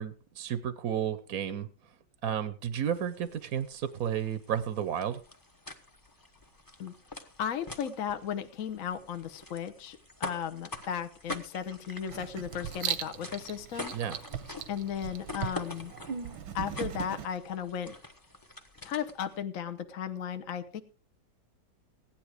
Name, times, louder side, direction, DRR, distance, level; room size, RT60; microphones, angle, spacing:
voice 1, 0.0-1.7 2.2-5.2 13.9-14.2, right 9 dB, 60° right, 13 dB, 1.1 m, -32 dB
sound 1, 2.8-19.4, left 2 dB, 15° left, 0.9 m, -46 dB
voice 2, 7.4-13.9 14.7-15.9 16.5-18.0 18.8-20.8, left 8 dB, 55° left, 9 dB, 1.1 m, -35 dB
Writing, 12.1-17.3, right 9 dB, 85° right, 1.7 m, -38 dB
16.0 x 10.5 x 4.9 m, 0.37 s
omnidirectional pair, 2.1 m